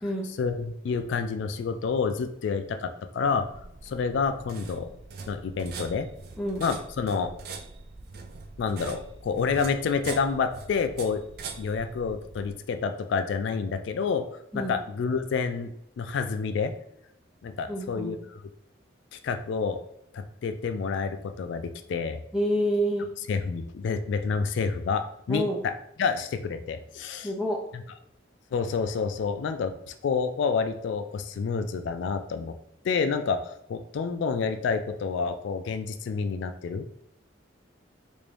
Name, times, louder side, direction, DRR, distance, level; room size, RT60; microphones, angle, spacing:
voice 1, 0.4-3.5 3.8-4.9 5.3-6.1 6.6-7.3 8.6-11.2 11.6-14.2 14.5-15.7 16.0-16.7 17.4-18.4 19.1-19.8 20.1-22.2 23.3-25.7 26.0-27.3 27.7-27.8 28.5-32.5 32.8-36.9, left 5 dB, 70° left, 9 dB, 0.3 m, -28 dB
sound 1, 3.2-12.5, right 4 dB, 55° right, 0.4 m, -43 dB
voice 2, 17.7-18.2 22.3-23.1 25.3-25.6 27.2-27.6, equal, 5° right, -1 dB, 0.5 m, -27 dB
3.4 x 2.6 x 3.3 m, 0.76 s
head